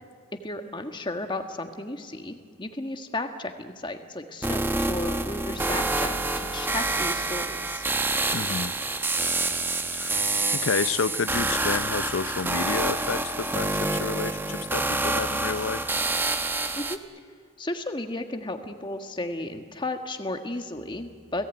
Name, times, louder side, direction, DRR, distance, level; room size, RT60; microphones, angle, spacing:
voice 1, 0.4-7.8 16.8-17.0 17.6-21.5, left 2 dB, 25° left, 6 dB, 1.5 m, -34 dB
sound 1, 4.4-17.0, right 2 dB, 10° right, 0.9 m, -27 dB
voice 2, 8.3-8.8 9.9-16.0, left 5 dB, 75° left, 17 dB, 0.6 m, -30 dB
30.0 x 18.0 x 9.2 m, 2.1 s
head